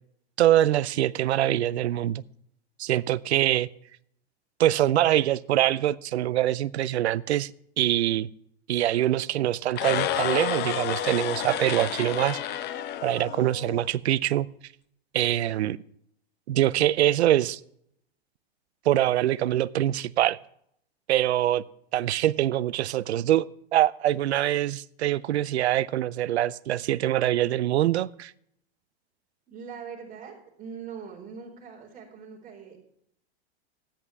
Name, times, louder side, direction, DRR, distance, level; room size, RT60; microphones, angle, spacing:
voice 1, 0.4-2.2 2.8-3.7 4.6-7.5 7.8-8.3 8.7-12.4 13.0-14.5 15.1-15.8 16.5-17.6 18.9-20.4 21.1-21.6 21.9-28.3, right 13 dB, 80° right, 0.6 m, -24 dB
sound 1, 9.7-13.9, left 10 dB, 30° left, 0.9 m, -30 dB
voice 2, 29.5-32.8, right 6 dB, 25° right, 4.2 m, -42 dB
13.5 x 10.0 x 3.3 m
hypercardioid pair, 115°, 33 cm